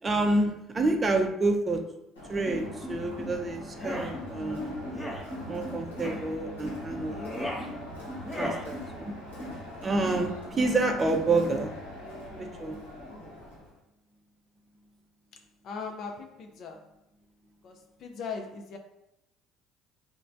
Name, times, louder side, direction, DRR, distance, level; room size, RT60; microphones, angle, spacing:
voice 1, 0.0-1.8 2.3-4.7 5.5-7.5 8.4-9.1 9.8-11.7 12.4-12.8, right 2 dB, 30° right, 4 dB, 0.4 m, -28 dB
Crowd, 2.2-13.7, left 1 dB, 90° left, 0.9 m, -40 dB
sound 1, 3.7-4.1 4.9-5.2 6.0-6.3 7.1-7.7 8.2-8.7, equal, 15° left, 0.6 m, -35 dB
voice 2, 15.3-16.9 17.6-18.8, left 5 dB, 55° left, 3 dB, 0.4 m, -40 dB
3.0 x 2.1 x 2.6 m, 0.87 s
hypercardioid pair, 60°, 0 cm